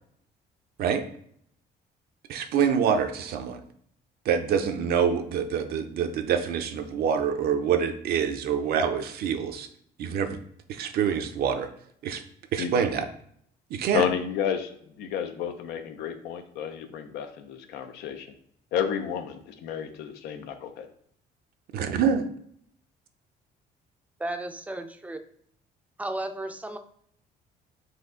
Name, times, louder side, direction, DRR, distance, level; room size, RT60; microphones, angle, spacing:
voice 1, 2.3-3.6 4.3-9.7 10.0-10.4 10.7-11.7 12.0-12.2 12.5-13.1 13.7-14.0 21.7-22.3, right 7 dB, 65° right, 7 dB, 0.6 m, -26 dB
voice 2, 13.9-14.7 15.0-18.3 18.7-20.9, left 8 dB, 85° left, 8 dB, 0.6 m, -31 dB
voice 3, 24.2-25.2 26.0-26.8, right 1 dB, 10° right, 7 dB, 0.4 m, -34 dB
4.3 x 2.6 x 3.7 m, 0.66 s
cardioid pair, 110°, 17 cm